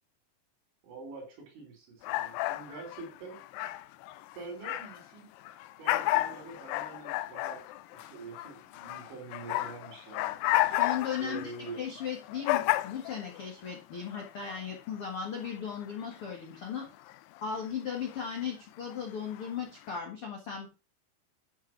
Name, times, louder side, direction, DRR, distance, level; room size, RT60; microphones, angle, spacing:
voice 1, 0.8-3.4 4.4-5.3 5.8-10.4 11.2-11.8, right 4 dB, 80° right, 3 dB, 6.4 m, -45 dB
sound 1, 2.0-5.1 5.5-13.7 14.1-14.6 15.4-15.5 15.7-16.3 17.1-17.4 18.0-18.5 18.9-19.5, left 16 dB, 85° left, 2.3 m, -32 dB
voice 2, 10.6-11.5 11.8-16.9 17.4-20.7, left 7 dB, 65° left, 0 dB, 1.3 m, -36 dB
12.0 x 5.3 x 6.0 m, 0.31 s
omnidirectional pair, 5.3 m